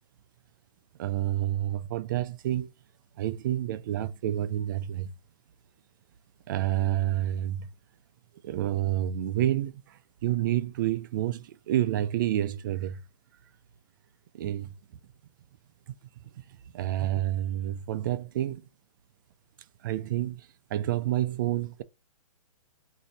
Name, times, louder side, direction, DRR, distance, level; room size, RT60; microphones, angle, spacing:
voice 1, 1.0-2.7 3.2-5.1 6.5-7.7 8.4-9.7 10.2-13.0 14.3-14.7 16.7-18.6 19.8-20.4 20.7-21.8, right 13 dB, 35° right, 0.4 m, -28 dB
3.1 x 2.7 x 4.1 m
hypercardioid pair, 155°, 18 cm